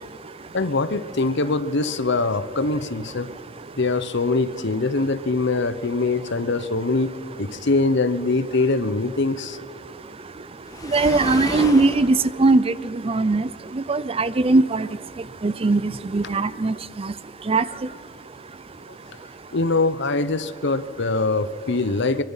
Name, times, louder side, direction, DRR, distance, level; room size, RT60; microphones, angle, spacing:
voice 1, 0.5-3.3 3.8-7.1 7.4-9.6 16.2-16.3 18.9-19.0 19.5-22.2, left 3 dB, 65° left, 14 dB, 0.9 m, -23 dB
Waves surf, 10.6-12.1, left 1 dB, 20° left, 2.0 m, -31 dB
voice 2, 10.9-12.7 13.0-13.5 13.7-14.9 15.4-17.1 17.5-17.6, right 3 dB, 30° right, 17 dB, 0.5 m, -20 dB
24.0 x 23.5 x 5.7 m, 2.7 s
head